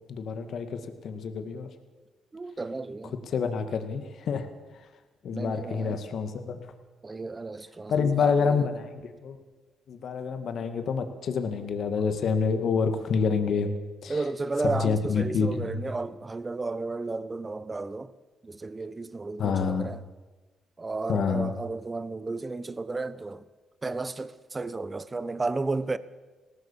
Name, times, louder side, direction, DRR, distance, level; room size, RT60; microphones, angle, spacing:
voice 1, 0.0-1.7 3.3-4.5 5.2-6.6 7.9-9.4 9.9-13.7 14.0-14.2 14.6-15.9 19.4-19.9 21.1-21.5, left 5 dB, 60° left, 2.1 m, -27 dB
voice 2, 2.3-3.1 5.3-6.0 7.0-8.7 14.1-18.1 18.4-20.0 20.8-23.4 23.8-26.0, right 3 dB, 25° right, 1.1 m, -33 dB
20.0 x 17.5 x 7.4 m
cardioid pair, 90°, 0 cm